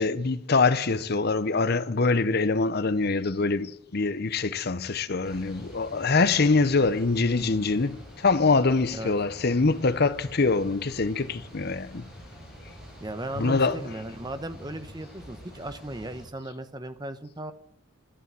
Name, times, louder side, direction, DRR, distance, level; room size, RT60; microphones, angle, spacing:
voice 1, 0.0-12.0 13.4-13.8, left 3 dB, 50° left, 0.7 m, -24 dB
sound 1, 5.2-16.3, equal, ahead, 6.5 m, -46 dB
voice 2, 13.0-17.5, right 1 dB, 20° right, 0.9 m, -36 dB
11.5 x 11.0 x 7.5 m
head